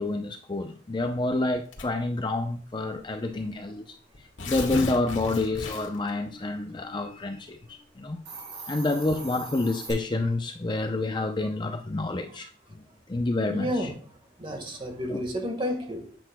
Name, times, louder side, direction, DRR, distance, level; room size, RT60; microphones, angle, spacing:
voice 1, 0.0-4.0 4.4-8.2 8.7-12.8 13.1-13.9 15.1-15.2, left 2 dB, 25° left, 0.5 m, -28 dB
Tearing, 1.7-2.1 3.0-3.1 3.4-3.5 4.1-6.1, left 2 dB, 75° left, 1.4 m, -34 dB
Hiss, 8.1-9.9, right 4 dB, 65° right, 4.1 m, -41 dB
voice 2, 13.5-14.0 14.4-16.2, equal, 25° right, 1.5 m, -31 dB
10.5 x 7.9 x 2.2 m
head